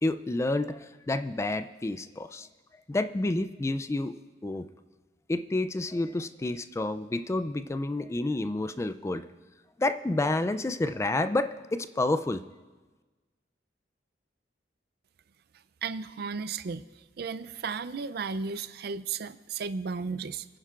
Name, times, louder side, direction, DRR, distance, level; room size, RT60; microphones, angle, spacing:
voice 1, 0.0-2.5 2.9-4.1 4.4-4.7 5.3-9.3 9.8-12.4, left 2 dB, 15° left, 10 dB, 0.3 m, -29 dB
voice 2, 15.8-16.8 17.2-20.5, right 5 dB, 60° right, 14 dB, 0.4 m, -34 dB
27.0 x 10.0 x 2.4 m, 1.3 s
head